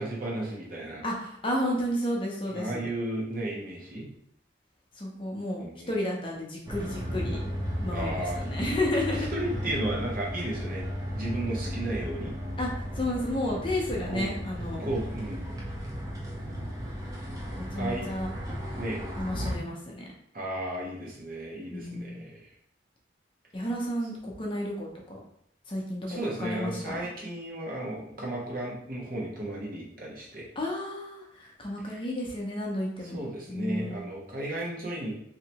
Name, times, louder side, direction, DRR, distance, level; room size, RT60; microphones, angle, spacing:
voice 1, 0.0-1.0 2.5-4.1 5.6-5.9 7.9-8.5 9.1-12.4 14.1-14.3 14.8-15.5 17.8-18.1 18.8-19.0 20.3-22.4 26.1-30.5 33.1-35.1, right 1 dB, 45° right, -3 dB, 0.9 m, -34 dB
voice 2, 1.0-2.9 5.0-7.4 7.8-9.3 12.6-14.8 17.6-18.3 19.2-20.1 21.7-22.2 23.5-25.2 25.7-27.1 30.6-33.2 33.5-34.0, left 1 dB, 25° left, -1 dB, 0.7 m, -32 dB
sound 1, 6.7-19.6, equal, 20° right, 0.6 m, -35 dB
3.2 x 2.8 x 2.9 m, 0.70 s
head